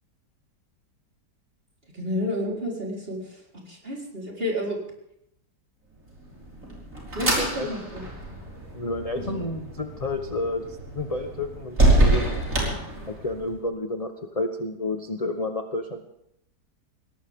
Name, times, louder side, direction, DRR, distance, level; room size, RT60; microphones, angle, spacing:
voice 1, 1.9-3.4 3.7-4.8 7.1-8.0 9.3-9.4, left 1 dB, 30° right, -2 dB, 4.6 m, -30 dB
sound 1, 6.2-13.5, right 2 dB, 50° right, 5.6 m, -26 dB
voice 2, 7.3-7.7 8.7-12.4 13.1-16.1, left 2 dB, 25° left, 6 dB, 0.9 m, -30 dB
21.5 x 18.0 x 3.7 m, 0.76 s
omnidirectional pair, 1.8 m